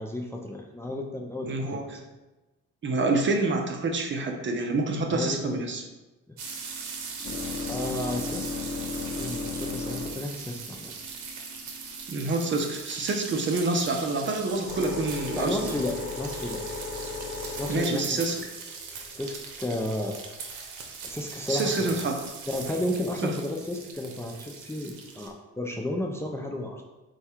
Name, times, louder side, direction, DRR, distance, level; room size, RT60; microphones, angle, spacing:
voice 1, 0.0-2.0 5.1-5.6 6.3-6.5 7.7-8.5 9.1-10.9 15.3-16.6 17.6-18.2 19.1-20.2 21.0-21.9 22.5-26.8, left 1 dB, 10° left, 1 dB, 0.4 m, -33 dB
voice 2, 1.4-2.0 2.8-5.8 12.1-15.8 17.7-18.4 21.5-22.2 23.2-23.3, right 3 dB, 40° right, 3 dB, 0.7 m, -27 dB
sound 1, 6.4-12.7 13.5-19.3 20.3-20.8, left 4 dB, 40° left, 0.8 m, -37 dB
sound 2, 6.4-25.3, right 5 dB, 80° right, 0.8 m, -40 dB
4.6 x 2.3 x 4.3 m, 1.1 s
cardioid pair, 90°, 30 cm